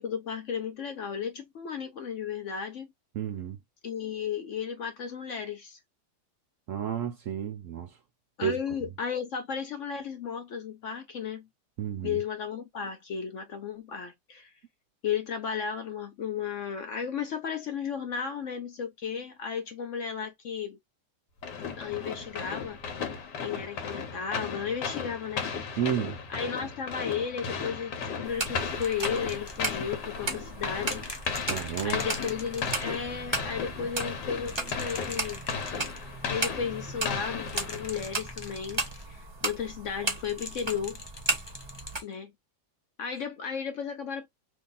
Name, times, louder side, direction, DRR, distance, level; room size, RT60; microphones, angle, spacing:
voice 1, 0.0-2.9 3.8-5.8 8.4-11.5 12.0-14.5 15.0-20.8 21.8-22.8 23.4-25.5 26.3-31.0 31.8-35.4 36.2-41.0 42.0-42.3 43.0-44.3, left 7 dB, 65° left, 0.8 m, -34 dB
voice 2, 3.1-3.6 6.7-8.0 8.4-8.6 11.8-12.2 25.8-26.2 31.5-32.0, right 9 dB, 70° right, 0.8 m, -31 dB
sound 1, 21.4-38.2, left 6 dB, 85° left, 1.5 m, -35 dB
sound 2, 28.2-42.0, right 3 dB, 25° right, 0.6 m, -36 dB
sound 3, 28.8-29.8 30.9-33.0 34.4-36.0 37.4-39.1 40.2-42.1 43.2-43.3, left 2 dB, 35° left, 0.4 m, -43 dB
2.9 x 2.7 x 3.8 m
omnidirectional pair, 1.8 m